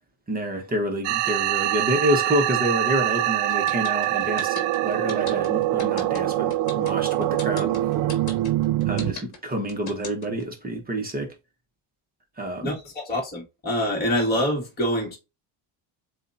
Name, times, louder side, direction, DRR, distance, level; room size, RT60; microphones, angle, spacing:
voice 1, 0.3-7.7 8.9-11.3 12.4-12.8, equal, 20° right, 1.1 m, -28 dB
sound 1, 1.0-9.1, right 14 dB, 60° right, 0.5 m, -24 dB
sound 2, 3.5-10.4, left 3 dB, 35° left, 1.7 m, -37 dB
voice 2, 12.6-15.2, equal, 20° left, 1.9 m, -25 dB
7.3 x 2.5 x 2.6 m
cardioid pair, 135°, 48 cm